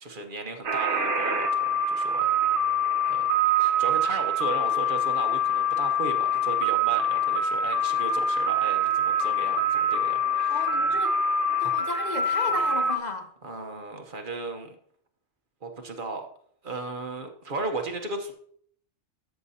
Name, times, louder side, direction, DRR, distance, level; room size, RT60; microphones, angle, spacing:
voice 1, 0.0-2.3 3.1-10.6 13.4-14.7 15.6-16.3 16.6-18.3, right 3 dB, 50° right, 4 dB, 1.1 m, -35 dB
sound 1, 0.6-13.0, equal, 75° right, 1.3 m, -25 dB
voice 2, 10.5-11.2 11.6-13.3, left 3 dB, 40° left, 6 dB, 0.9 m, -34 dB
13.0 x 6.7 x 2.8 m, 0.63 s
omnidirectional pair, 1.2 m